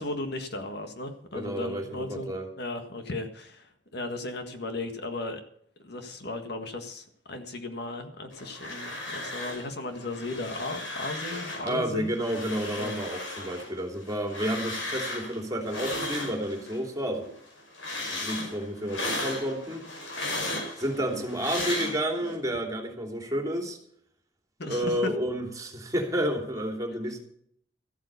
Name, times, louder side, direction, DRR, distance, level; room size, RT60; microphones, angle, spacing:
voice 1, 0.0-2.3 2.6-5.4 5.8-12.1 12.8-12.9 24.6-25.1, left 2 dB, 60° left, 6 dB, 1.7 m, -36 dB
voice 2, 1.3-2.5 11.6-17.3 18.0-19.8 20.8-23.8 24.7-27.2, equal, 20° right, 2 dB, 2.9 m, -30 dB
sound 1, 8.3-9.7 10.0-11.7 12.1-16.8 17.2-22.4, left 2 dB, 85° left, 5.5 m, -36 dB
14.5 x 8.7 x 6.9 m, 0.65 s
head